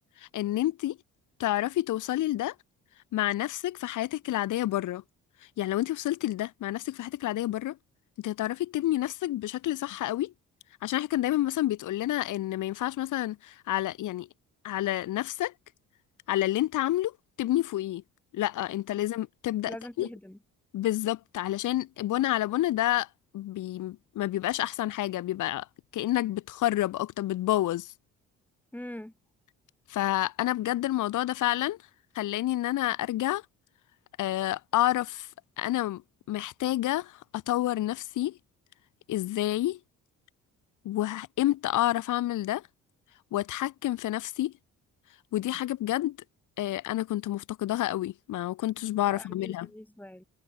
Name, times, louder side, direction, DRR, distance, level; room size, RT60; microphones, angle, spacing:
voice 1, 0.2-1.0 1.4-2.5 3.1-5.0 5.6-7.8 8.2-10.3 10.8-14.3 14.6-15.5 16.3-17.1 17.4-18.0 18.3-20.1 20.7-23.1 23.3-25.7 25.9-27.9 29.9-31.8 32.1-33.4 34.2-35.3 35.6-36.0 36.3-38.4 39.1-39.8 40.8-42.6 43.3-44.5 45.3-46.2 46.6-49.7, left 14 dB, 80° left, 2.3 m, -29 dB
voice 2, 19.7-20.4 28.7-29.1 49.1-50.2, left 1 dB, 5° left, 4.5 m, -43 dB
cardioid pair, 90°, 30 cm